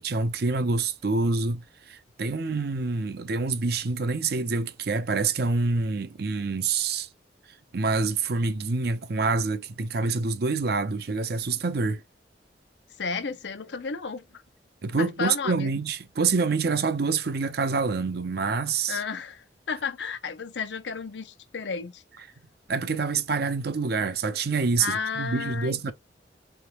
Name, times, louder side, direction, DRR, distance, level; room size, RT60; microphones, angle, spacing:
voice 1, 0.0-7.1 7.7-12.0 14.8-19.0 22.7-25.9, right 4 dB, 65° right, 0.6 m, -26 dB
voice 2, 13.0-14.4 15.0-15.7 18.9-22.0 24.8-25.9, left 5 dB, 85° left, 0.7 m, -33 dB
3.8 x 3.5 x 2.9 m
head